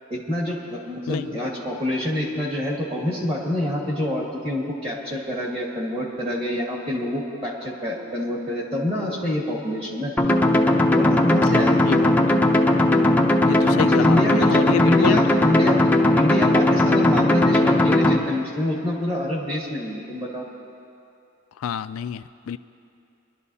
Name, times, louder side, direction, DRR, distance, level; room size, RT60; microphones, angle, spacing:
voice 1, 0.1-10.1 10.9-12.1 13.8-15.8 16.1-20.4, left 1 dB, 25° right, -3 dB, 2.0 m, -27 dB
sound 1, 10.2-18.2, left 1 dB, 5° left, 0.6 m, -18 dB
voice 2, 11.5-12.1 13.5-15.2 21.6-22.6, left 8 dB, 70° left, 13 dB, 0.3 m, -28 dB
24.0 x 12.0 x 2.8 m, 2.5 s
head